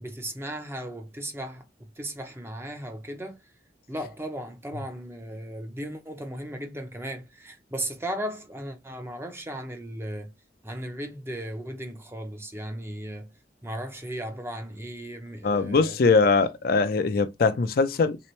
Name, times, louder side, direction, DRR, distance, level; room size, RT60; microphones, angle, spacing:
voice 1, 0.0-1.6 2.0-3.4 3.9-10.3 10.6-13.3 13.6-16.0, right 1 dB, 15° right, 0.6 m, -36 dB
voice 2, 15.4-18.2, left 4 dB, 55° left, 0.4 m, -22 dB
3.4 x 2.9 x 3.1 m
head